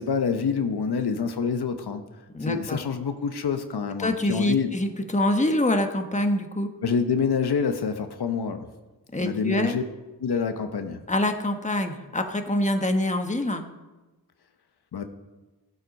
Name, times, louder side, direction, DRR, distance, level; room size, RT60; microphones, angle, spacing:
voice 1, 0.0-2.0 2.4-4.7 6.8-8.7 9.2-9.8 10.2-11.0 14.9-15.0, left 6 dB, 80° left, 7 dB, 1.0 m, -26 dB
voice 2, 2.3-2.8 4.0-6.7 9.1-9.7 11.1-13.6, left 1 dB, 20° left, 5 dB, 1.3 m, -25 dB
16.0 x 8.0 x 5.3 m, 1.1 s
cardioid pair, 60°, 38 cm